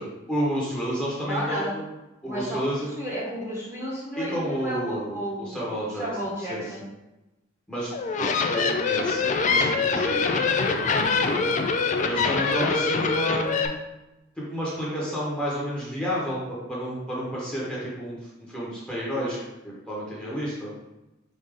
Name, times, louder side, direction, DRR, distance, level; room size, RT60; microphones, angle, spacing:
voice 1, 0.0-1.8 2.2-2.9 4.2-6.1 6.5-6.6 7.7-7.9 8.2-11.6 12.0-13.7 14.4-19.4 19.6-20.7, equal, 5° left, -7 dB, 1.1 m, -31 dB
voice 2, 1.3-1.7 2.2-6.8 10.9-11.1 12.0-12.4, equal, 15° right, -6 dB, 1.1 m, -33 dB
sound 1, 7.9-13.7, left 4 dB, 35° left, 0.3 m, -24 dB
5.0 x 2.7 x 3.6 m, 1.0 s
head